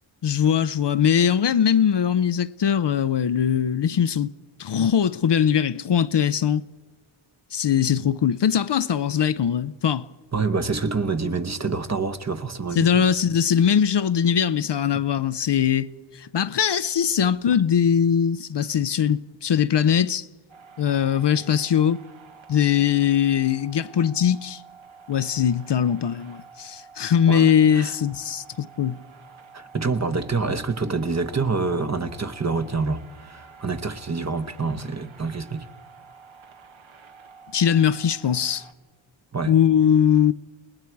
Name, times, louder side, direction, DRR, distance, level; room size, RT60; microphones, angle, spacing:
voice 1, 0.2-4.3 4.6-6.6 7.5-10.1 12.8-20.3 20.8-22.0 22.5-24.6 25.1-29.0 37.5-38.6 39.5-40.3, left 8 dB, 55° left, 0.6 m, -21 dB
voice 2, 10.3-13.1 27.3-27.9 29.5-35.7 39.3-39.5, right 4 dB, 30° right, 1.0 m, -27 dB
sound 1, 20.5-38.7, right 5 dB, 65° right, 1.3 m, -49 dB
29.5 x 19.5 x 4.6 m
wide cardioid pair, 105°, 50 cm